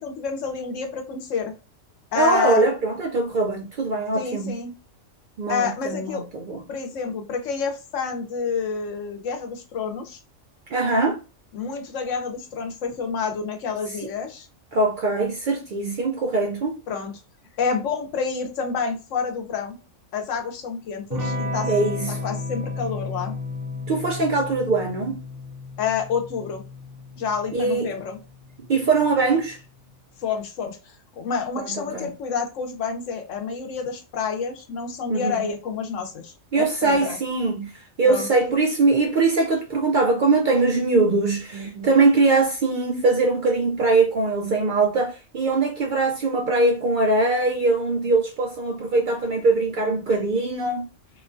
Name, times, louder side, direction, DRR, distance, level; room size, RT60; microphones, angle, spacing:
voice 1, 0.0-1.5 2.1-2.7 4.1-4.7 5.5-6.3 6.7-10.2 11.5-14.5 16.9-17.1 17.6-19.8 20.1-21.7 22.2-23.3 25.8-26.6 27.2-28.2 30.2-30.8 31.2-37.2 38.0-38.3, left 5 dB, 70° left, 1.0 m, -28 dB
voice 2, 2.1-4.6 5.4-6.6 10.7-11.2 14.7-16.8 21.7-22.2 23.9-25.2 27.5-27.9 28.7-29.6 31.6-32.1 35.1-35.5 36.5-50.9, right 3 dB, 80° right, 0.4 m, -22 dB
Electric guitar / Strum, 21.1-29.4, left 2 dB, 50° right, 0.8 m, -33 dB
2.9 x 2.2 x 2.4 m
omnidirectional pair, 1.4 m